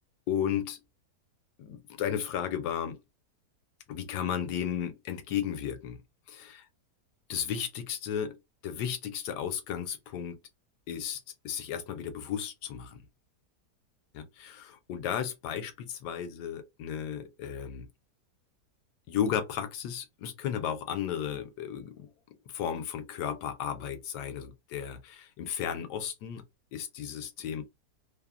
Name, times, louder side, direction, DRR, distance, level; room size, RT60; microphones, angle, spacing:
voice 1, 0.3-0.8 1.6-3.0 3.9-6.0 6.3-6.6 7.3-8.4 8.6-10.4 10.9-13.0 14.1-17.9 19.1-22.1 22.5-26.4 26.7-27.6, left 9 dB, 75° left, 1.1 m, -34 dB
3.0 x 2.0 x 2.4 m
omnidirectional pair, 1.8 m